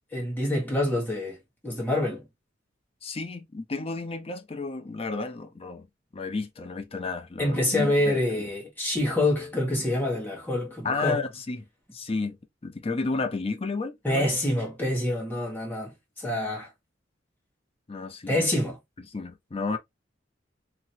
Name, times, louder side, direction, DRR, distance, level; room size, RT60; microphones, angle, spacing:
voice 1, 0.1-1.4 1.6-2.2 7.4-11.2 14.0-15.9 16.2-16.7 18.3-18.8, left 1 dB, 10° left, 1.3 m, -26 dB
voice 2, 3.0-5.9 6.1-8.2 10.8-11.7 11.9-12.4 12.6-14.2 17.9-18.5 19.1-19.8, left 3 dB, 30° left, 0.5 m, -32 dB
2.9 x 2.8 x 2.6 m
head